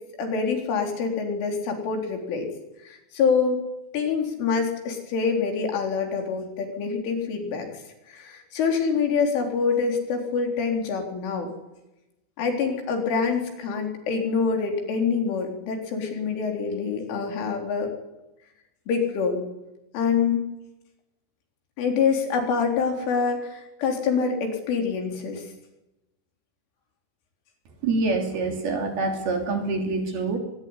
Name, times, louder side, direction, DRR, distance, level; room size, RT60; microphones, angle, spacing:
voice 1, 0.2-2.5 2.9-3.6 3.9-7.8 8.1-11.5 12.4-17.9 18.9-19.4 19.9-20.4 21.8-25.5, left 5 dB, 70° left, 3 dB, 6.4 m, -25 dB
voice 2, 27.8-30.4, right 3 dB, 55° right, 4 dB, 4.6 m, -26 dB
24.0 x 20.0 x 9.9 m, 0.96 s
omnidirectional pair, 5.8 m